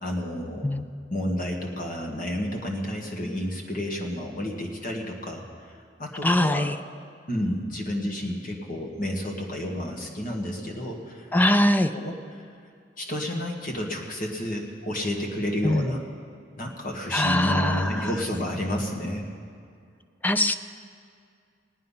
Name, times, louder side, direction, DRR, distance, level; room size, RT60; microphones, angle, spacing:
voice 1, 0.0-0.7 1.1-6.7 7.3-11.3 11.9-12.5 13.0-16.0 16.6-19.3, equal, 45° left, 1 dB, 1.8 m, -30 dB
voice 2, 6.2-6.8 11.3-11.9 15.6-15.9 17.1-18.1 20.2-20.5, left 1 dB, 10° left, 9 dB, 0.4 m, -22 dB
19.0 x 9.2 x 5.7 m, 2.3 s
head